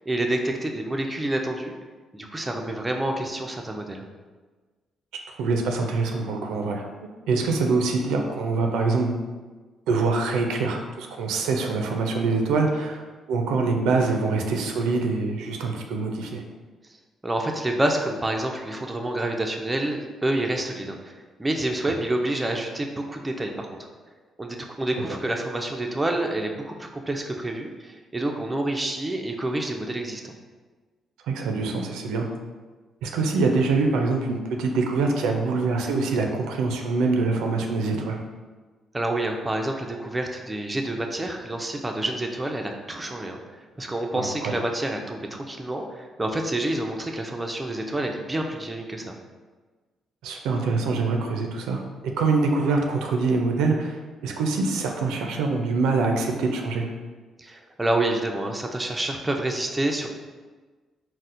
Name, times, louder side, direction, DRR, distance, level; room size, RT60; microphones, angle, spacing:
voice 1, 0.0-1.7 2.1-4.0 17.2-23.9 24.4-30.3 38.9-49.1 57.4-60.1, right 1 dB, 15° right, 2 dB, 0.4 m, -28 dB
voice 2, 5.4-6.9 7.3-9.2 9.9-13.0 13.3-16.4 31.2-32.3 33.0-38.2 44.1-44.5 50.2-51.8 52.2-54.0 54.2-56.9, right 3 dB, 90° right, 2 dB, 0.4 m, -24 dB
4.1 x 2.1 x 2.5 m, 1.3 s
cardioid pair, 90°, 0 cm